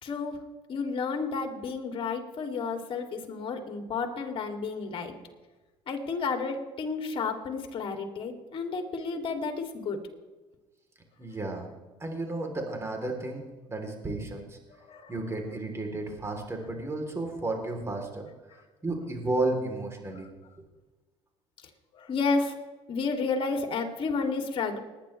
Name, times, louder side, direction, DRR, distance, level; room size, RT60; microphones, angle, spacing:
voice 1, 0.0-5.2 5.9-10.0 14.7-15.1 21.9-22.6 22.9-24.8, left 4 dB, 50° left, 4 dB, 2.7 m, -31 dB
voice 2, 11.2-11.7 12.0-14.6 15.1-18.3 18.8-20.3, right 2 dB, 25° right, 2 dB, 3.4 m, -33 dB
20.0 x 10.5 x 3.3 m, 1.2 s
supercardioid pair, 80°, 12 cm